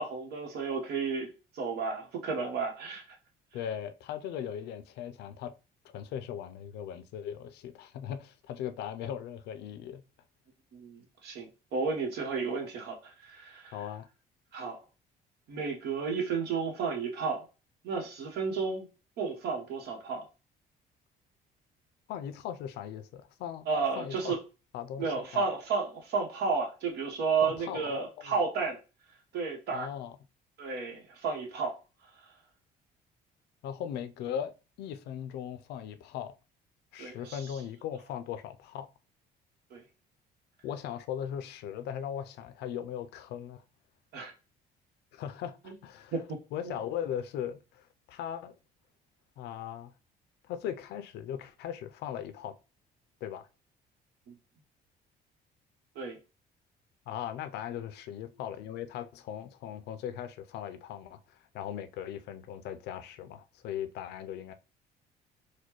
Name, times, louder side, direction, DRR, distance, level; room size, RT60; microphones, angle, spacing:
voice 1, 0.0-3.0 10.7-13.7 14.5-14.8 15.5-17.4 17.8-18.9 19.2-20.2 23.7-24.4 25.0-28.8 29.3-29.9 30.6-31.8 37.0-37.4 39.7-39.8 44.1-44.3 45.6-45.7 46.1-46.4 46.6-46.8 54.3-54.4 55.9-56.2, right 5 dB, 75° right, 1.1 m, -32 dB
voice 2, 3.5-5.5 5.8-10.0 13.7-14.1 22.1-23.7 24.0-24.3 24.7-25.5 27.4-28.4 29.7-30.2 33.6-34.5 34.8-36.4 36.9-38.9 40.6-43.6 45.1-46.1 46.5-48.5 49.4-49.9 50.5-52.6 53.2-53.5 57.1-64.5, left 9 dB, 75° left, 0.5 m, -38 dB
4.2 x 2.2 x 3.0 m
cardioid pair, 110°, 17 cm